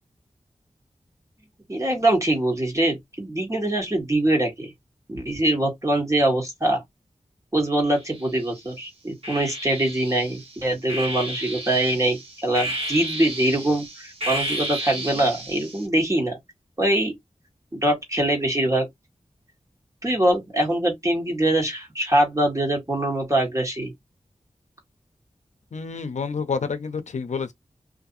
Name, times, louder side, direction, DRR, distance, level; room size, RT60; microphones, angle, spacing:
voice 1, 1.7-4.7 5.1-6.8 7.5-16.4 16.8-17.1 17.7-18.9 20.0-23.9, right 1 dB, 25° right, 1.5 m, -23 dB
sound 1, 7.9-8.6 9.2-15.9, right 1 dB, 55° right, 1.5 m, -33 dB
voice 2, 25.7-27.5, left 5 dB, 75° left, 0.5 m, -28 dB
2.5 x 2.5 x 2.6 m
wide cardioid pair, 50°, 12 cm